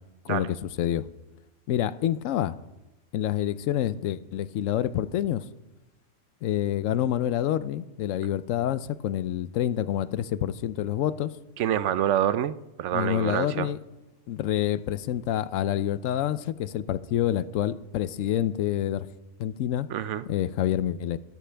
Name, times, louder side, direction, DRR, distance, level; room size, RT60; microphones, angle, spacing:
voice 1, 0.2-1.1 1.7-2.6 3.1-5.4 6.4-11.3 12.9-13.8 14.3-19.1 19.4-19.9 20.3-21.2, left 11 dB, 85° left, 16 dB, 1.0 m, -27 dB
voice 2, 11.6-12.5 12.8-13.7 19.9-20.2, right 11 dB, 75° right, 15 dB, 0.9 m, -26 dB
16.0 x 13.5 x 3.4 m, 1.0 s
omnidirectional pair, 1.3 m